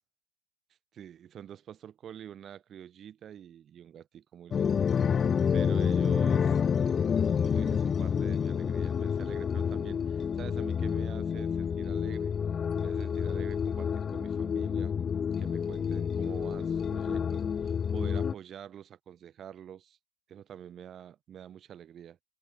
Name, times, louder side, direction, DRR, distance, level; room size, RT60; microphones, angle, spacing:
voice 1, 0.9-6.6 7.3-12.4 12.8-15.0 15.4-20.0 20.3-22.2, right 9 dB, 30° right, 1.4 m, -47 dB
sound 1, 4.5-18.3, left 7 dB, 25° left, 0.4 m, -29 dB
supercardioid pair, 125°, 0 cm